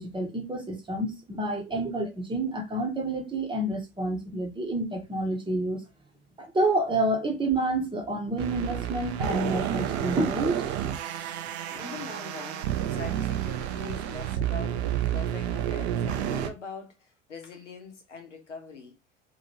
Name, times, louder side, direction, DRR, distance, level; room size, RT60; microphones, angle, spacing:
voice 1, 0.0-5.8 6.4-10.7, right 2 dB, 15° right, 0.8 m, -29 dB
sound 1, 8.4-16.5, right 10 dB, 65° right, 0.6 m, -30 dB
voice 2, 11.7-18.9, left 4 dB, 85° left, 0.8 m, -43 dB
2.9 x 2.6 x 2.9 m
figure-of-eight pair, 70°, 35 cm